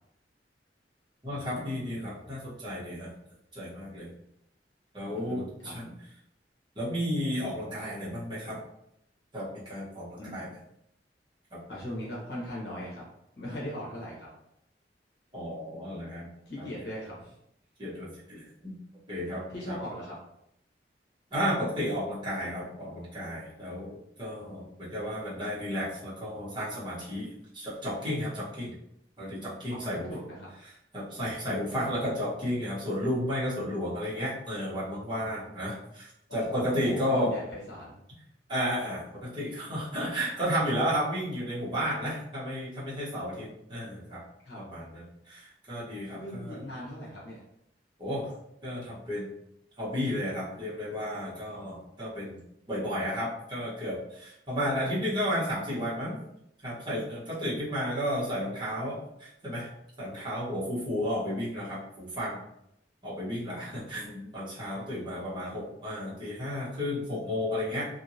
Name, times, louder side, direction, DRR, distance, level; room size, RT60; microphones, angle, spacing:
voice 1, 1.2-3.1 3.5-4.1 4.9-5.9 6.7-8.6 9.3-10.5 11.5-11.6 15.3-16.3 16.6-16.7 17.8-18.7 19.1-19.8 21.3-28.7 29.2-30.1 30.9-37.3 38.5-44.2 44.5-46.6 48.0-48.3 48.6-49.3 49.8-52.4 52.7-56.2 56.6-59.7 60.0-62.4 63.0-67.9, equal, 25° right, -9 dB, 1.2 m, -33 dB
voice 2, 5.1-5.7 10.2-10.4 11.7-13.0 13.4-14.3 16.5-17.3 19.2-20.2 29.7-30.5 36.5-38.0 44.4-44.6 46.1-47.4 63.7-63.8, equal, 65° left, -5 dB, 1.0 m, -39 dB
2.8 x 2.7 x 2.7 m, 0.77 s
head